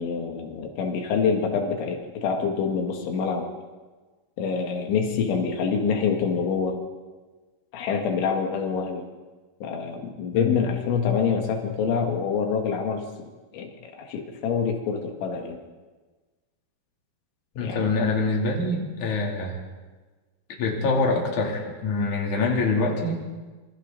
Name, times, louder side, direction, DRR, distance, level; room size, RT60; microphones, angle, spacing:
voice 1, 0.0-3.5 4.4-6.8 7.7-9.0 9.6-13.1 13.5-15.6 17.6-17.9, left 6 dB, 90° left, 3 dB, 4.3 m, -26 dB
voice 2, 17.6-19.6 20.6-23.2, left 3 dB, 45° left, -1 dB, 4.2 m, -25 dB
26.5 x 25.0 x 4.1 m, 1.3 s
omnidirectional pair, 5.2 m